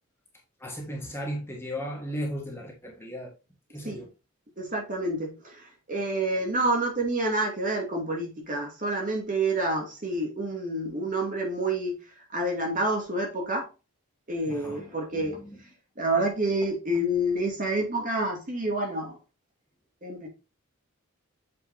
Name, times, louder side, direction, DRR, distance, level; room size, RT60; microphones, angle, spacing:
voice 1, 0.6-3.3 3.7-4.1 14.5-15.6, equal, 10° left, 1.6 m, -36 dB
voice 2, 4.6-12.0 12.3-13.7 14.3-15.4 16.0-19.2 20.0-20.3, right 1 dB, 35° right, 2.4 m, -28 dB
7.7 x 5.4 x 2.7 m
head